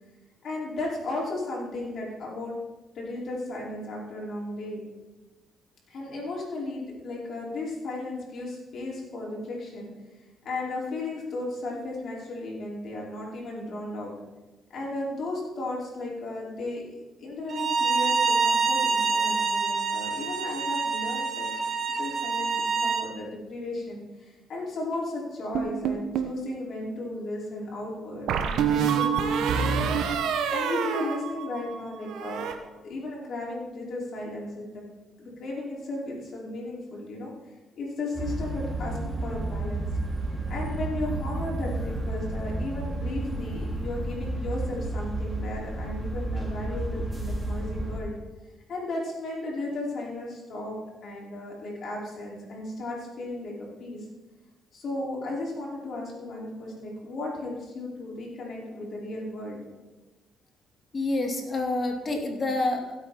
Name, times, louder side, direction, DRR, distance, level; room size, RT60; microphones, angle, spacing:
voice 1, 0.4-2.6 2.9-4.8 5.9-9.9 10.4-14.1 14.7-21.5 21.8-29.9 30.5-32.5 32.8-34.8 35.2-37.3 37.8-39.9 40.5-48.2 48.7-50.8 51.0-54.1 54.7-59.6, left 2 dB, 60° left, -4 dB, 4.9 m, -35 dB
Bowed string instrument, 17.5-23.1, right 4 dB, 50° right, 1.6 m, -26 dB
sound 1, 25.5-26.4 28.3-31.8 32.1-32.5, right 7 dB, 80° right, 1.1 m, -27 dB
sound 2, 38.1-48.0, right 2 dB, 5° right, 3.2 m, -31 dB
voice 2, 60.9-62.9, left 2 dB, 35° left, 3 dB, 2.3 m, -28 dB
16.5 x 8.4 x 4.3 m, 1.1 s
cardioid pair, 90°, 0 cm